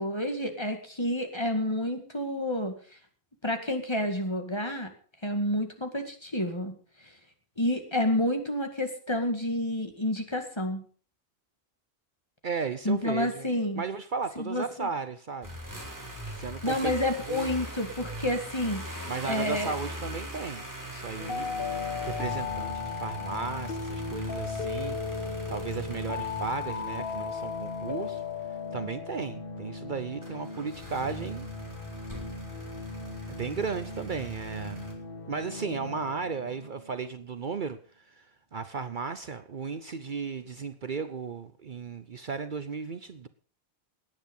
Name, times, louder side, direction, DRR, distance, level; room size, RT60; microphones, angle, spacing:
voice 1, 0.0-2.7 3.4-4.9 5.2-6.7 7.6-10.8 12.8-13.8 14.4-14.9 16.6-19.7, left 1 dB, 25° left, 5 dB, 2.1 m, -29 dB
voice 2, 12.4-13.5 13.7-15.5 16.3-16.9 17.3-17.5 19.1-21.5 22.0-25.0 25.5-28.2 28.7-31.5 33.3-34.8 35.3-43.3, right 5 dB, 50° right, 12 dB, 0.9 m, -35 dB
sound 1, 15.4-28.5 30.2-34.9, equal, 15° right, 3.8 m, -40 dB
sound 2, 21.2-36.9, left 5 dB, 55° left, 1.5 m, -37 dB
18.0 x 9.6 x 5.4 m, 0.43 s
omnidirectional pair, 1.1 m